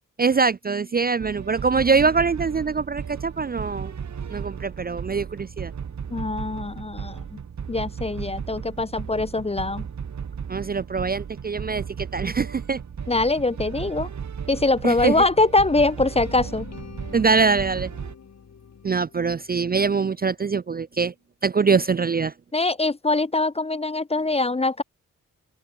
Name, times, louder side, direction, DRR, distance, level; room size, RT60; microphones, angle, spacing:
voice 1, 0.2-3.9 4.3-5.7 10.5-12.8 14.8-15.2 17.1-17.9 18.8-21.1 21.4-22.3, right 5 dB, 30° right, 0.4 m, -23 dB
sound 1, 1.2-18.1, right 7 dB, 55° right, 1.6 m, -35 dB
voice 2, 6.1-7.4 7.7-9.9 13.1-14.1 14.5-16.7 22.5-24.8, left 2 dB, 20° left, 0.6 m, -23 dB
sound 2, 16.2-20.3, left 6 dB, 50° left, 1.8 m, -45 dB
open air
cardioid pair, 60°, 34 cm